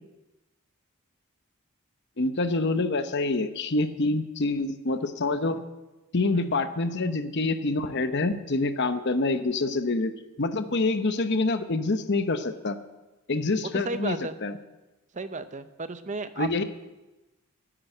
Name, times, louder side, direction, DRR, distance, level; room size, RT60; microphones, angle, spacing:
voice 1, 2.2-5.6 6.1-10.1 10.4-12.8 13.3-14.5 16.4-16.6, left 3 dB, 50° left, 10 dB, 0.9 m, -26 dB
voice 2, 6.4-6.7 13.7-14.4 15.1-16.6, right 3 dB, 35° right, 11 dB, 0.6 m, -34 dB
10.0 x 9.5 x 7.9 m, 1.1 s
head